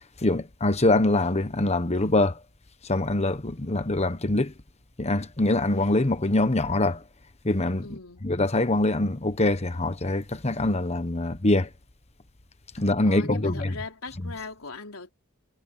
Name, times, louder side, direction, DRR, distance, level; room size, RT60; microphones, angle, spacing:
voice 1, 0.2-2.4 2.9-4.5 5.0-7.0 7.4-7.9 8.2-11.7 12.7-13.5, left 2 dB, 30° left, 1.3 m, -24 dB
voice 2, 7.8-8.3 13.0-15.1, left 3 dB, 85° left, 3.7 m, -39 dB
head